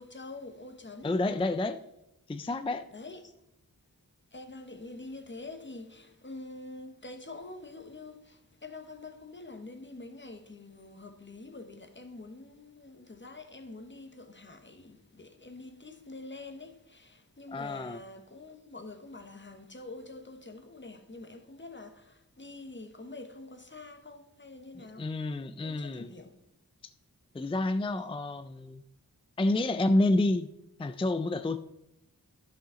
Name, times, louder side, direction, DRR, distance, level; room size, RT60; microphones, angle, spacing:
voice 1, 0.0-1.2 2.9-3.4 4.3-25.1 25.6-26.4, left 2 dB, 30° left, 1.0 m, -46 dB
voice 2, 1.0-1.8 2.3-2.8 17.5-18.0 24.7-26.1 27.3-28.8 29.4-30.5 30.8-31.6, left 2 dB, 15° left, 0.4 m, -29 dB
12.5 x 5.9 x 3.8 m
wide cardioid pair, 50°, 36 cm